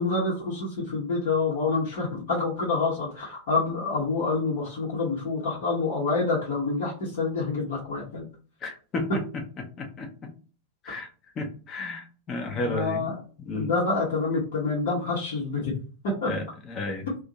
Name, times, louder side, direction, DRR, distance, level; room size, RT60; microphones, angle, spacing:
voice 1, 0.0-8.2 12.5-13.1 13.5-15.7 16.0-16.3, left 3 dB, 55° left, -6 dB, 1.1 m, -27 dB
voice 2, 8.6-10.3 10.8-11.1 11.4-13.1 13.4-13.7 16.3-17.1, left 2 dB, 30° left, 4 dB, 0.8 m, -33 dB
2.7 x 2.4 x 4.0 m, 0.38 s
figure-of-eight pair, 90°, 0 cm